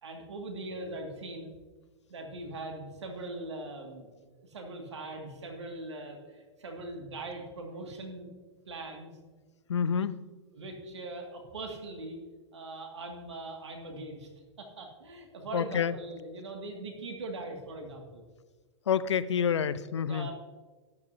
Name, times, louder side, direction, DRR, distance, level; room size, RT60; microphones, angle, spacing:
voice 1, 0.0-1.5 2.1-8.3 8.7-9.1 10.5-12.2 12.5-14.3 14.6-18.2 20.0-20.3, right 2 dB, 80° right, 2 dB, 2.2 m, -41 dB
voice 2, 9.7-10.2 15.5-15.9 18.9-20.3, left 7 dB, 80° left, 17 dB, 0.5 m, -28 dB
12.5 x 10.5 x 2.8 m, 1.3 s
hypercardioid pair, 110°, 15 cm